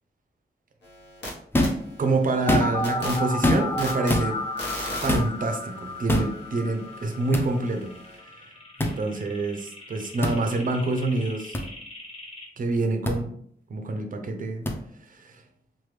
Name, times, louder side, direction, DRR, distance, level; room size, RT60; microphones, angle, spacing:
sound 1, 0.8-1.3 1.6-8.2, left 1 dB, 80° left, 1.0 m, -40 dB
sound 2, 1.5-1.8 2.3-2.9 3.4-3.8 4.1-4.3 5.1-5.3 6.1-6.3 7.3-7.5 8.8-8.9 10.2-10.4 11.5-11.6 13.0-13.2 14.7-14.8, left 1 dB, 10° left, 0.4 m, -23 dB
voice 1, 2.0-4.4 5.0-7.9 8.8-11.5 12.6-13.4 13.7-14.7 15.1-15.4, right 2 dB, 50° right, 5 dB, 0.5 m, -27 dB
sound 3, 2.5-12.5, left 1 dB, 35° left, 0.7 m, -34 dB
3.2 x 2.2 x 3.1 m, 0.65 s
wide cardioid pair, 170°, 18 cm